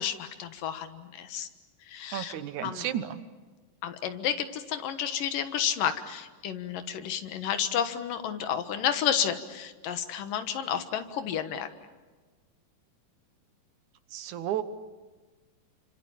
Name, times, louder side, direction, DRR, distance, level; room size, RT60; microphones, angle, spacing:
voice 1, 0.0-1.5 1.9-2.4 2.6-2.8 3.8-11.7, left 9 dB, 90° left, 9 dB, 3.1 m, -31 dB
voice 2, 2.1-3.2 14.1-14.6, right 11 dB, 70° right, 11 dB, 2.4 m, -32 dB
29.5 x 25.5 x 7.2 m, 1.3 s
omnidirectional pair, 3.8 m